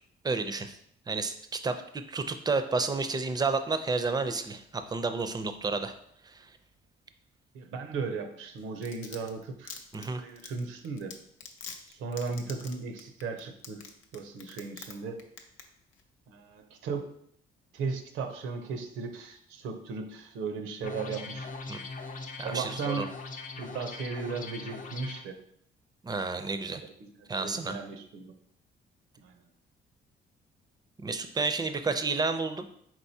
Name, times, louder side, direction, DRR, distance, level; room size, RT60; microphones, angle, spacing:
voice 1, 0.2-0.8 1.1-5.9 6.2-6.5 9.9-10.2 21.7-21.8 22.4-23.0 26.0-26.8 27.3-27.8 31.0-32.7, right 3 dB, 20° right, 9 dB, 0.4 m, -31 dB
voice 2, 7.5-11.2 11.9-15.2 16.3-17.1 17.7-21.5 22.4-23.1 23.6-25.4 27.0-27.1 27.4-28.3 29.2-29.3, right 4 dB, 85° right, 6 dB, 0.7 m, -36 dB
Domestic sounds home sounds, 8.6-14.9 15.2-15.6 15.9-16.0, left 6 dB, 80° left, 0.6 m, -43 dB
sound 1, 20.8-25.2, left 3 dB, 40° left, 0.6 m, -40 dB
4.6 x 3.8 x 2.7 m, 0.69 s
cardioid pair, 90°, 20 cm